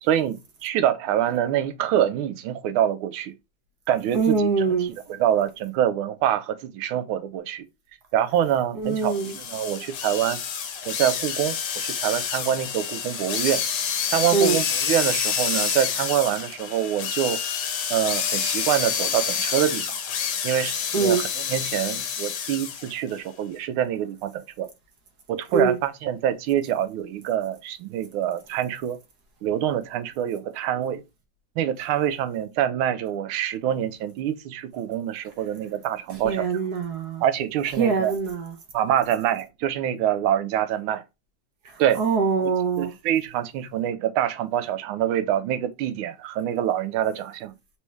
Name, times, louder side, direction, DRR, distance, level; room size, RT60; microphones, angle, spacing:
voice 1, 0.0-3.3 3.9-4.8 5.2-7.7 8.1-10.4 10.8-13.6 14.1-17.4 17.9-20.0 20.4-21.2 21.5-24.7 25.3-29.0 29.4-31.0 31.6-36.5 37.2-38.1 38.7-41.0 41.8-42.0 42.8-47.5, right 10 dB, 80° right, 1.4 m, -25 dB
voice 2, 4.1-4.9 8.7-9.3 14.3-14.6 20.9-21.2 25.5-25.8 36.1-37.2 37.8-38.5 41.6-42.9, right 5 dB, 60° right, 1.3 m, -23 dB
sound 1, 9.0-22.9, left 7 dB, 65° left, 1.3 m, -28 dB
4.1 x 3.3 x 3.1 m
omnidirectional pair, 2.3 m